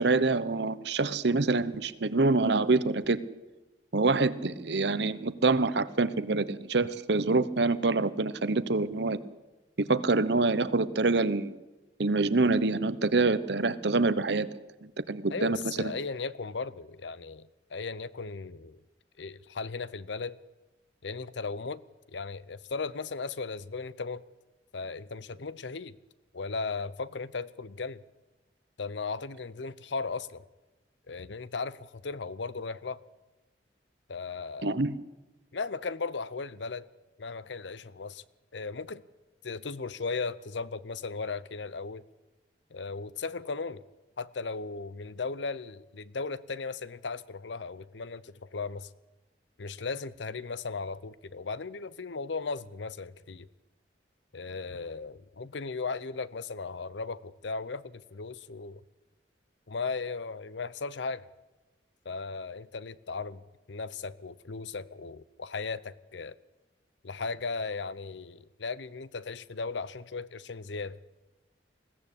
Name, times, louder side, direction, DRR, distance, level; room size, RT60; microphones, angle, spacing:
voice 1, 0.0-3.2 3.9-9.2 9.8-11.5 12.0-14.5 15.1-15.9 34.6-35.0, right 3 dB, 70° right, 0.9 m, -26 dB
voice 2, 15.3-18.8 19.2-20.4 21.0-21.8 22.1-24.2 24.7-26.0 26.3-28.0 28.8-30.4 31.1-33.0 34.1-34.8 35.5-36.9 37.2-38.2 38.5-39.0 39.4-42.0 42.7-43.8 44.2-48.9 49.6-53.5 54.3-58.8 59.7-61.3 62.0-63.4 63.7-66.4 67.0-71.0, left 4 dB, 75° left, 0.7 m, -36 dB
21.0 x 15.5 x 8.5 m
head